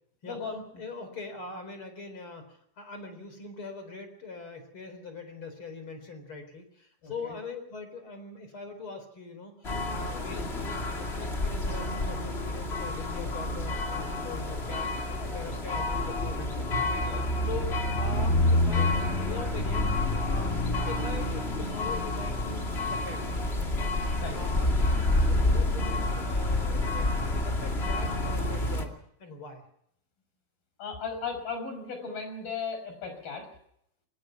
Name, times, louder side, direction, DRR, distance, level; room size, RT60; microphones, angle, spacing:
voice 1, 0.2-0.6 7.0-7.3 10.1-10.3 17.0-17.2 24.2-24.4 30.8-33.5, left 5 dB, 45° left, 7 dB, 7.1 m, -36 dB
voice 2, 0.8-19.9 20.2-20.6 20.9-23.2 23.7-24.7 25.1-29.6, left 3 dB, 30° left, 8 dB, 4.1 m, -42 dB
sound 1, 9.6-28.8, left 2 dB, 80° left, 0.5 m, -28 dB
23.5 x 19.0 x 5.9 m, 0.72 s
omnidirectional pair, 5.8 m